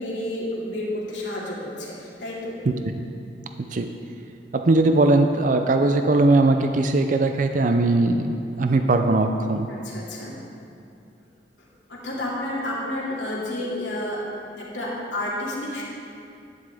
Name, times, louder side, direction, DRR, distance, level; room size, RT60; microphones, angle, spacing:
voice 1, 0.0-2.6 9.7-10.3 11.6-14.3 14.6-15.8, left 1 dB, 90° left, -6 dB, 2.5 m, -30 dB
voice 2, 3.6-3.9 4.5-9.7, right 2 dB, 45° right, 6 dB, 0.4 m, -20 dB
11.5 x 11.0 x 3.5 m, 2.6 s
head